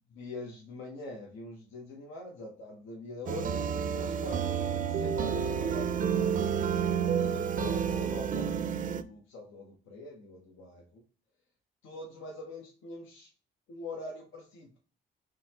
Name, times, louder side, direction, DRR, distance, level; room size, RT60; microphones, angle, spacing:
voice 1, 0.1-6.7 7.2-8.7 9.0-11.0 11.8-13.3 13.7-14.8, left 2 dB, 85° left, 0 dB, 0.9 m, -44 dB
sound 1, 3.3-9.0, right 7 dB, 45° right, 0.4 m, -30 dB
3.8 x 3.1 x 2.8 m, 0.37 s
cardioid pair, 90°, 20 cm